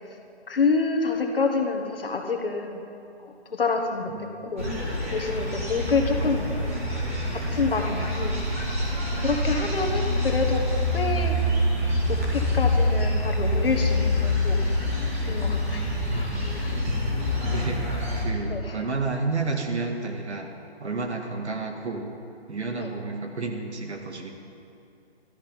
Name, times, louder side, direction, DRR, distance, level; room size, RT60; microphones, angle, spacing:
voice 1, 0.5-2.8 3.2-4.7 5.1-6.5 6.9-8.4 8.9-10.6 10.9-11.4 12.1-14.6 15.3-15.8 16.1-16.8 18.5-18.8 22.8-22.9, left 4 dB, 55° left, 3 dB, 1.5 m, -28 dB
voice 2, 4.1-4.5 15.7-16.2 17.4-17.8 18.2-20.5 20.8-22.1 22.5-24.3, right 3 dB, 85° right, 3 dB, 1.9 m, -31 dB
sound 1, 4.6-18.2, left 1 dB, 15° right, 1.2 m, -26 dB
13.0 x 12.0 x 5.2 m, 2.5 s
hypercardioid pair, 175°, 33 cm